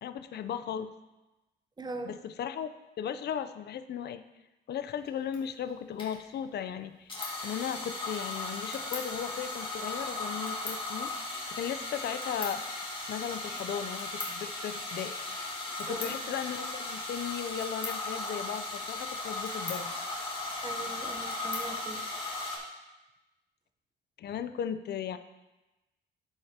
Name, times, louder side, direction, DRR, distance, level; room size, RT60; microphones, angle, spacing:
voice 1, 0.0-0.9 2.0-2.7 3.0-4.2 4.7-7.1 7.4-11.1 11.5-12.6 13.1-15.1 15.8-19.9 24.2-25.2, left 8 dB, 55° left, 11 dB, 0.5 m, -36 dB
voice 2, 1.8-2.2 15.9-16.2 20.6-22.0, right 2 dB, 20° right, 5 dB, 0.8 m, -41 dB
sound 1, 5.1-5.2 5.3-5.4 6.0-6.1 7.1-22.6, left 2 dB, 25° left, 2.1 m, -36 dB
13.5 x 4.6 x 2.9 m, 1.1 s
cardioid pair, 90°, 20 cm